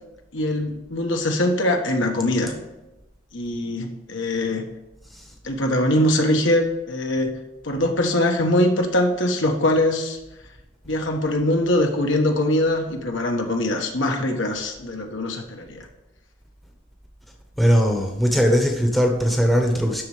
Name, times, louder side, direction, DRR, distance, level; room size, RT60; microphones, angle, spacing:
voice 1, 0.3-2.5 3.3-4.6 5.4-7.3 7.6-10.2 10.9-15.9, left 1 dB, 65° left, 3 dB, 1.4 m, -22 dB
voice 2, 17.6-20.0, equal, ahead, 1 dB, 1.0 m, -19 dB
12.5 x 4.3 x 4.9 m, 0.99 s
head